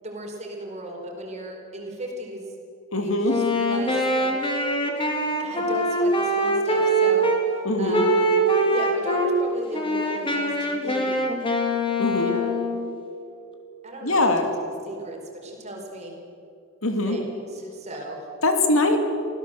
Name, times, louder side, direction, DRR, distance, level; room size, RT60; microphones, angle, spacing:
voice 1, 0.0-2.5 2.9-4.3 5.4-8.3 8.7-11.3 12.1-12.6 13.8-14.5 14.9-16.2 17.0-18.3, right 1 dB, 35° right, 1 dB, 4.5 m, -36 dB
voice 2, 2.9-3.3 7.6-8.1 12.0-12.3 14.0-14.5 15.2-15.5 16.8-17.2 18.4-19.0, left 2 dB, 80° left, 5 dB, 2.7 m, -22 dB
Wind instrument woodwind instrument, 3.2-7.4 7.9-9.3 9.7-12.9, right 1 dB, 25° left, 2.6 m, -23 dB
24.5 x 16.5 x 7.8 m, 2.5 s
head